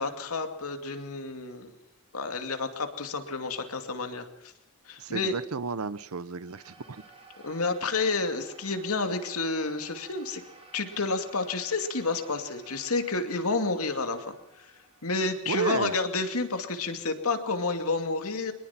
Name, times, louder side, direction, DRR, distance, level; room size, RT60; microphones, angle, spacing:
voice 1, 0.0-1.7 2.1-4.5 4.9-5.3 7.4-10.4 10.7-14.7 15.0-18.5, left 3 dB, 75° left, 6 dB, 2.5 m, -30 dB
voice 2, 5.0-7.0 15.2-15.9, right 5 dB, 75° right, 18 dB, 0.8 m, -32 dB
sound 1, 6.4-16.9, right 2 dB, 25° right, 6.2 m, -54 dB
23.0 x 20.5 x 5.9 m, 0.78 s
head